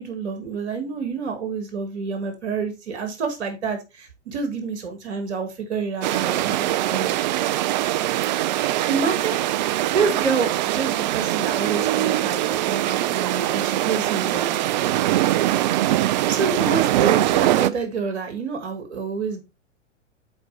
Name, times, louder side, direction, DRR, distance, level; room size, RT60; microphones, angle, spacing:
voice 1, 0.0-7.2 8.9-14.6 15.9-19.4, right 5 dB, 65° right, 2.1 m, -28 dB
sound 1, 6.0-17.7, right 14 dB, 40° right, 0.4 m, -22 dB
8.0 x 4.3 x 3.4 m
figure-of-eight pair, 95°, 36 cm